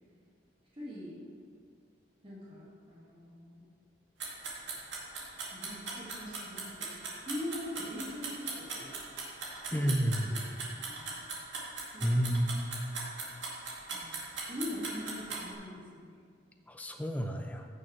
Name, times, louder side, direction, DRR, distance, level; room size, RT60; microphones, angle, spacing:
voice 1, 0.7-1.2 2.2-3.6 5.5-6.9 7.3-9.0 9.7-10.4 10.9-11.2 11.9-12.3 13.9-14.2 14.5-16.2, left 1 dB, 30° right, -7 dB, 2.0 m, -42 dB
sound 1, 4.2-15.4, right 4 dB, 90° right, 2.2 m, -38 dB
voice 2, 9.7-10.3 12.0-12.6 16.7-17.7, equal, 10° left, 4 dB, 0.5 m, -30 dB
15.0 x 6.4 x 3.3 m, 2.1 s
head